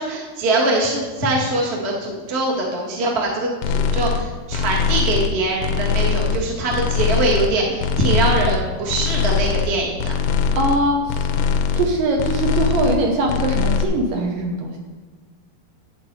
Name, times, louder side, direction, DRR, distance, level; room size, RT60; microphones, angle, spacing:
voice 1, 0.0-10.1, right 2 dB, 35° right, -3 dB, 1.0 m, -22 dB
sound 1, 3.6-4.2 4.5-5.3 5.6-6.4 6.7-7.5 7.8-8.6 8.9-9.7 10.0-10.8 11.1-11.9 12.2-13.0 13.3-13.8, left 6 dB, 85° left, 2.8 m, -21 dB
voice 2, 10.5-11.3 11.7-14.8, right 2 dB, 70° right, 1 dB, 2.3 m, -21 dB
11.5 x 8.3 x 4.7 m, 1.3 s
omnidirectional pair, 4.6 m